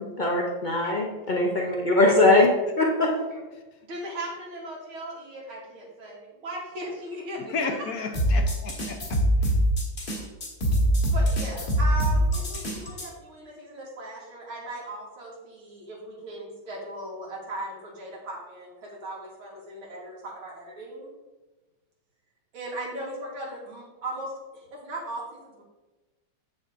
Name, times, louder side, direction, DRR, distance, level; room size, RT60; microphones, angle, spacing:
voice 1, 0.2-2.5 2.8-3.1, left 2 dB, 85° left, -1 dB, 0.4 m, -21 dB
voice 2, 3.9-8.2 11.1-21.1 22.5-25.6, right 1 dB, 85° right, -4 dB, 2.9 m, -38 dB
voice 3, 7.5-9.5, left 4 dB, 60° left, 5 dB, 1.0 m, -33 dB
sound 1, 8.1-13.1, equal, 35° left, 1.5 m, -24 dB
7.8 x 6.7 x 3.7 m, 1.2 s
omnidirectional pair, 2.2 m